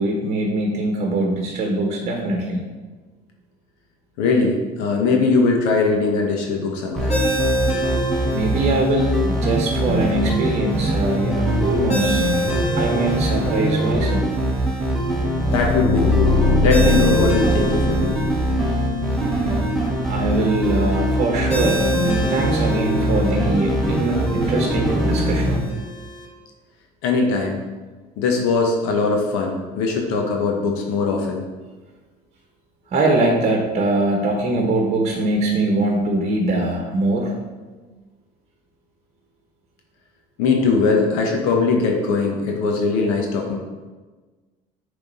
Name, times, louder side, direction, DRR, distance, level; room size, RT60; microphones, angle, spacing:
voice 1, 0.0-2.7 8.3-12.2 12.7-14.3 20.0-25.7 32.9-37.3, right 2 dB, 40° right, 1 dB, 1.1 m, -22 dB
voice 2, 4.2-7.2 15.5-18.2 27.0-27.6 28.2-31.4 40.4-43.6, left 4 dB, 85° left, 1 dB, 1.0 m, -20 dB
sound 1, 7.0-25.6, right 1 dB, ahead, 1.2 m, -22 dB
Ringtone, 7.1-26.2, equal, 35° left, 1.6 m, -30 dB
sound 2, 14.9-19.9, left 2 dB, 20° left, 1.1 m, -22 dB
6.9 x 3.5 x 4.1 m, 1.3 s
supercardioid pair, 95°, 18 cm